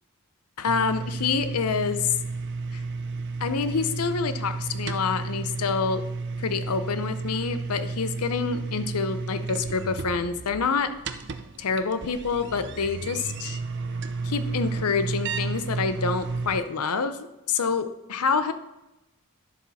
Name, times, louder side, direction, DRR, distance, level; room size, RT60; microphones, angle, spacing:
voice 1, 0.6-2.1 2.7-2.8 3.4-6.0 6.4-10.9 11.6-13.6 14.2-17.2 17.5-18.5, left 5 dB, 85° left, 10 dB, 0.7 m, -27 dB
sound 1, 0.7-16.6, right 4 dB, 50° right, 0.6 m, -32 dB
11.0 x 7.2 x 4.2 m, 0.97 s
head